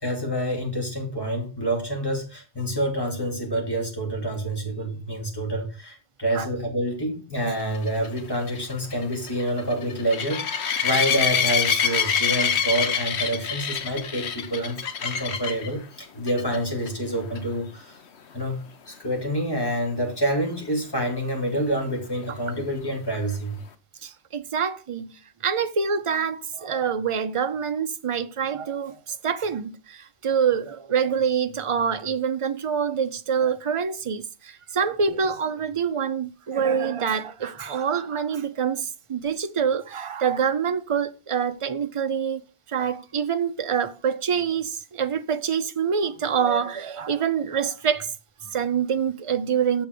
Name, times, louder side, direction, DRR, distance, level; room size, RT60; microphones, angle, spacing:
voice 1, 0.0-18.0 18.3-18.6 18.9-23.6, right 1 dB, 20° left, 2.6 m, -27 dB
sound 1, 7.7-15.7 16.3-16.6 16.9-17.0 17.4-17.5 21.0-21.1, left 7 dB, 85° left, 1.2 m, -25 dB
voice 2, 24.0-25.1 25.4-42.4 42.7-48.1 48.4-49.9, right 7 dB, 35° right, 0.6 m, -26 dB
7.1 x 5.6 x 6.6 m
omnidirectional pair, 1.1 m